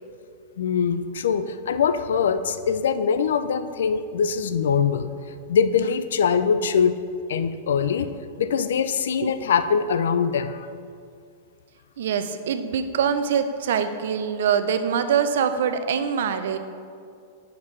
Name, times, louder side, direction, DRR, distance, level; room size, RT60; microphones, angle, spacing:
voice 1, 0.6-5.1 5.5-6.9 7.3-10.7, left 6 dB, 85° left, 11 dB, 0.4 m, -23 dB
voice 2, 12.0-16.6, right 7 dB, 75° right, 9 dB, 0.5 m, -24 dB
8.8 x 5.8 x 3.2 m, 2.3 s
hypercardioid pair, 140°, 0 cm